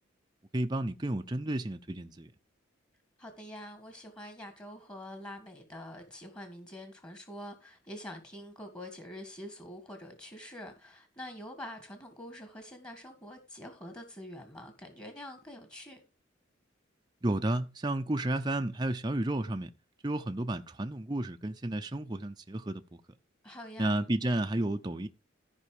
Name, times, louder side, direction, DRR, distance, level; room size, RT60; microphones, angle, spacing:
voice 1, 0.5-2.3 17.2-19.7 20.0-22.8 23.8-25.1, right 1 dB, 20° right, 0.6 m, -32 dB
voice 2, 3.2-16.0 23.4-24.0, left 1 dB, 20° left, 1.8 m, -46 dB
14.0 x 5.4 x 4.9 m
head